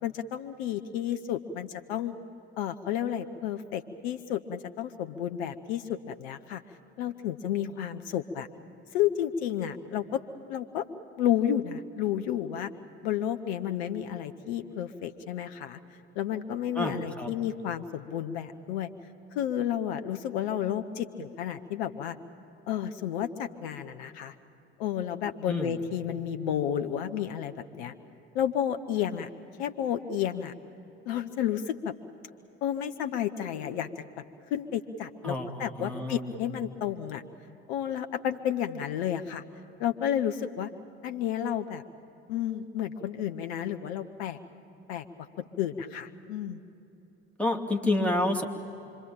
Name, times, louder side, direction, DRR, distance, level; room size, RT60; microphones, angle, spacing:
voice 1, 0.0-2.1 2.6-6.6 7.0-8.5 8.9-10.2 10.5-10.8 11.2-12.7 13.0-15.8 16.1-18.9 19.3-22.2 22.7-24.3 24.8-27.9 28.3-29.3 29.6-30.5 31.1-31.9 32.6-33.9 34.5-37.2 37.7-39.4 39.8-40.7 41.0-41.8 42.3-44.4 44.9-45.0 45.6-46.6, left 10 dB, 70° left, 9 dB, 1.0 m, -31 dB
voice 2, 16.7-17.3 25.5-25.8 35.2-36.4 47.4-48.4, left 1 dB, 5° left, 2 dB, 2.6 m, -29 dB
26.0 x 24.0 x 8.8 m, 3.0 s
figure-of-eight pair, 55°, 33 cm